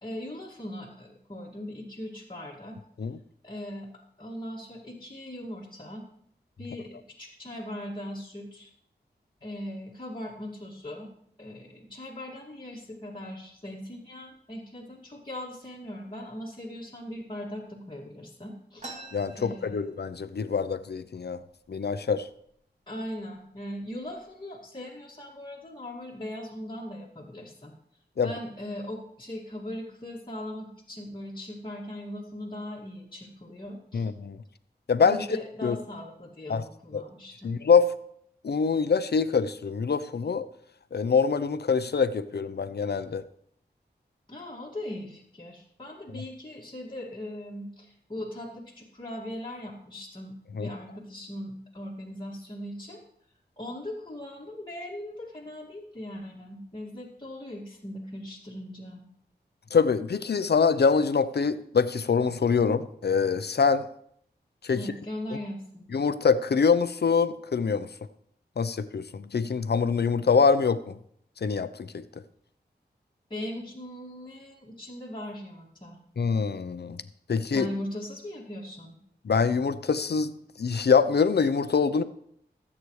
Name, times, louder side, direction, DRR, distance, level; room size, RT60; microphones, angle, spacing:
voice 1, 0.0-2.8 3.4-3.9 4.2-6.1 6.6-8.7 9.4-11.1 11.4-18.9 19.4-19.8 22.9-27.7 28.2-34.1 35.0-37.5 44.3-53.0 53.6-59.0 64.7-65.9 73.3-76.0 77.5-79.0, left 1 dB, 25° left, -5 dB, 2.2 m, -39 dB
sound 1, 18.8-20.4 20.7-20.8 21.1-21.7 22.3-22.5 23.2-23.4 23.8-24.3, right 2 dB, 40° right, 2.3 m, -45 dB
voice 2, 19.1-21.4 21.7-22.2 28.2-28.3 33.9-34.4 34.9-35.3 35.6-35.8 36.5-36.6 36.9-37.0 37.4-37.9 38.4-40.5 40.9-43.2 50.6-50.7 59.7-63.9 64.6-64.8 65.9-67.9 68.6-71.0 71.4-72.0 76.2-77.0 77.3-77.7 79.2-80.3 80.6-82.0, left 5 dB, 70° left, 12 dB, 0.7 m, -24 dB
20.0 x 8.5 x 3.2 m, 0.69 s
wide cardioid pair, 70°, 17 cm